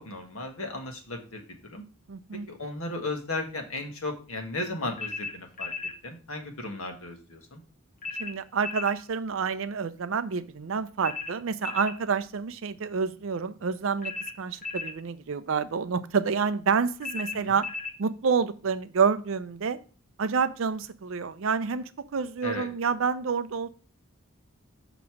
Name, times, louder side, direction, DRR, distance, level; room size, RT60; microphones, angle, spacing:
voice 1, 0.0-1.4 1.7-1.8 2.5-5.7 6.0-7.6 17.3-17.5 22.4-22.7, left 2 dB, 70° left, 4 dB, 1.3 m, -35 dB
voice 2, 2.1-2.5 8.2-17.7 18.0-19.8 20.2-23.7, right 5 dB, 60° right, 13 dB, 0.5 m, -28 dB
sound 1, 5.0-6.0 8.0-9.0 11.0-12.0 14.0-15.0 17.0-18.0, left 4 dB, 35° left, 0.9 m, -35 dB
6.2 x 3.0 x 5.7 m, 0.38 s
head